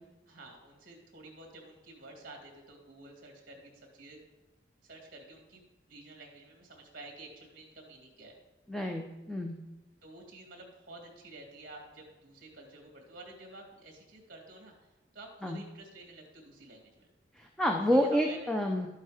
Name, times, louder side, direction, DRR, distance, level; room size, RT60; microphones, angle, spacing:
voice 1, 0.3-4.2 4.8-8.4 10.0-17.1 17.7-18.4, right 2 dB, 50° right, 1 dB, 2.3 m, -51 dB
voice 2, 8.7-9.5 15.4-15.6 17.3-18.9, equal, 5° left, 1 dB, 0.6 m, -29 dB
12.0 x 7.3 x 5.0 m, 1.1 s
head